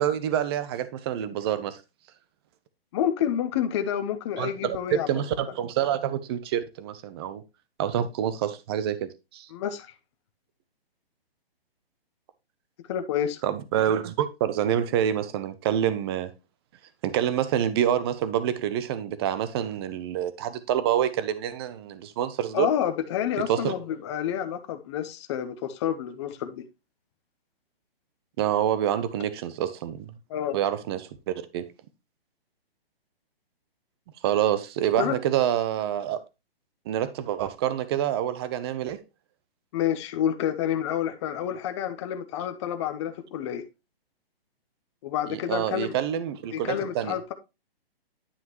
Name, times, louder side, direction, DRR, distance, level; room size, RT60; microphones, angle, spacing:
voice 1, 0.0-1.8 4.4-7.4 7.8-9.5 13.4-16.3 17.0-22.7 23.5-23.7 28.4-30.1 30.5-31.7 34.2-36.2 36.9-39.0 45.3-47.2, right 10 dB, 25° right, 0.7 m, -27 dB
voice 2, 2.9-5.1 9.5-9.9 12.9-13.4 22.5-26.6 30.3-30.6 35.0-35.2 39.7-43.6 45.0-45.9 46.5-47.3, left 10 dB, 30° left, 0.8 m, -29 dB
9.8 x 5.6 x 3.0 m
hypercardioid pair, 150°, 30 cm